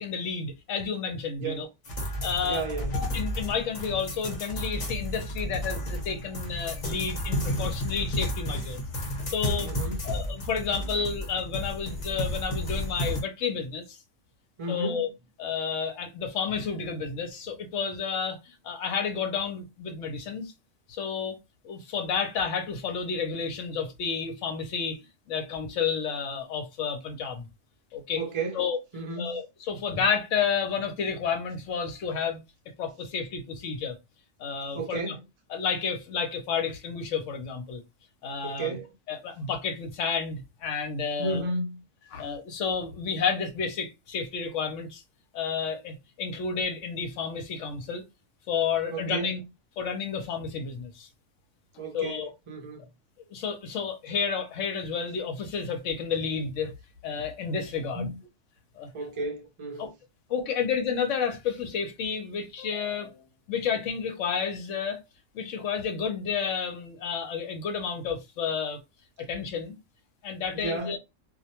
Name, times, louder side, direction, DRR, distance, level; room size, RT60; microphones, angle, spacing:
voice 1, 0.0-1.7 2.2-2.6 2.9-8.9 9.3-9.7 10.0-14.0 14.7-15.1 15.4-20.5 20.9-21.4 21.6-27.5 27.9-28.2 28.5-28.8 29.2-32.4 32.8-34.0 34.4-35.2 35.5-37.8 38.2-38.8 39.1-41.5 42.1-45.0 45.3-48.0 48.5-49.4 49.8-51.1 51.9-52.3 53.3-56.7 57.0-58.1 58.8-58.9 59.8-59.9 60.3-65.0 65.3-68.8 69.2-69.8 70.2-71.0, left 6 dB, 75° left, 0.9 m, -31 dB
sound 1, 1.8-13.2, equal, 45° left, 0.9 m, -32 dB
voice 2, 2.4-2.9 9.6-10.1 14.6-15.0 28.1-28.6 28.9-29.4 34.7-35.2 38.4-38.9 41.2-41.8 48.9-49.4 51.8-52.9 57.9-58.2 58.9-59.9 70.5-71.0, right 2 dB, 40° right, 0.4 m, -33 dB
2.3 x 2.1 x 2.8 m
omnidirectional pair, 1.3 m